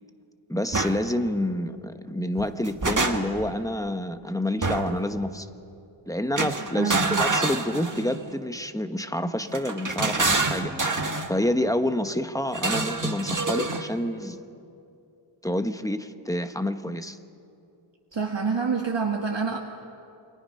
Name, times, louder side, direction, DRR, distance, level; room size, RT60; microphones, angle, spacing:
voice 1, 0.5-5.5 6.1-14.4 15.4-17.2, left 1 dB, 5° left, 9 dB, 1.0 m, -28 dB
sound 1, 0.7-1.0 2.4-3.5 4.6-5.0 6.4-8.2 9.5-11.3 12.5-13.9, right 3 dB, 40° right, 1.5 m, -26 dB
voice 2, 6.7-7.3 18.1-19.6, right 5 dB, 60° right, 1 dB, 1.6 m, -27 dB
29.0 x 23.0 x 5.4 m, 2.7 s
wide cardioid pair, 55°, 49 cm